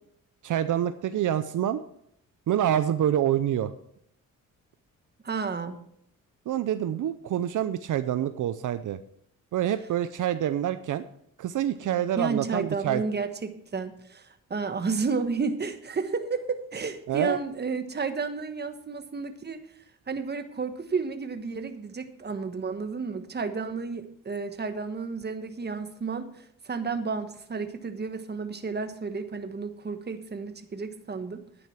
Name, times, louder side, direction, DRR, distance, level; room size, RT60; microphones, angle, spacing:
voice 1, 0.4-1.8 2.5-3.7 6.5-9.0 9.5-11.0 11.4-13.0 17.1-17.4, right 11 dB, 65° right, 11 dB, 0.7 m, -26 dB
voice 2, 5.2-5.8 12.2-31.4, right 4 dB, 30° right, 9 dB, 1.3 m, -32 dB
11.0 x 9.3 x 5.8 m, 0.72 s
cardioid pair, 105°, 33 cm